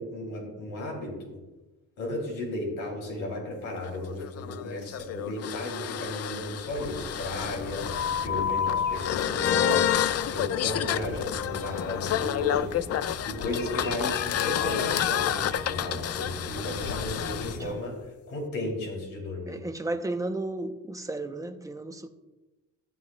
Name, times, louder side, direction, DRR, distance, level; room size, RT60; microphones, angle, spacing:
voice 1, 0.0-1.4 2.0-10.0 10.3-12.9 13.2-18.0 18.3-19.6, left 1 dB, 80° left, 3.6 m, -34 dB
sound 1, 3.8-17.6, left 10 dB, 55° left, 0.5 m, -29 dB
sound 2, 6.8-17.7, left 1 dB, 35° left, 2.6 m, -41 dB
voice 2, 19.5-22.1, right 2 dB, 10° right, 0.9 m, -33 dB
14.5 x 9.6 x 2.4 m
cardioid pair, 90°, 30 cm